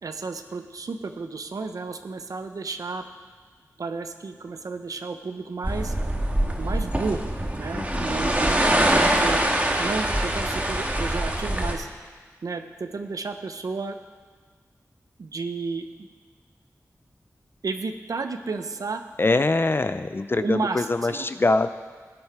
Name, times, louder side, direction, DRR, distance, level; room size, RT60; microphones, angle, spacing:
voice 1, 0.0-3.0 3.8-5.9 6.6-9.4 9.8-11.9 12.4-14.0 15.2-16.1 17.6-19.0 20.4-21.3, right 4 dB, 85° right, 7 dB, 0.7 m, -32 dB
sound 1, 5.6-11.7, right 1 dB, 25° right, 1.5 m, -24 dB
voice 2, 7.7-8.3 19.2-21.7, left 2 dB, 40° left, 11 dB, 0.4 m, -24 dB
16.0 x 9.5 x 4.7 m, 1.5 s
wide cardioid pair, 65°, 6 cm